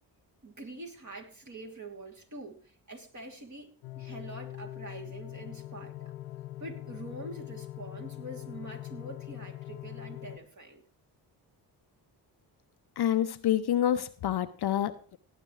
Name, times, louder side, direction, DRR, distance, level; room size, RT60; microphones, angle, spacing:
voice 1, 0.4-3.7 3.9-6.1 6.6-10.8, right 2 dB, 35° right, 1 dB, 3.0 m, -45 dB
sound 1, 3.8-10.4, left 15 dB, 85° left, 0.7 m, -42 dB
voice 2, 13.0-15.2, left 11 dB, 50° left, 12 dB, 0.7 m, -28 dB
17.5 x 9.0 x 3.2 m, 0.40 s
supercardioid pair, 50°, 49 cm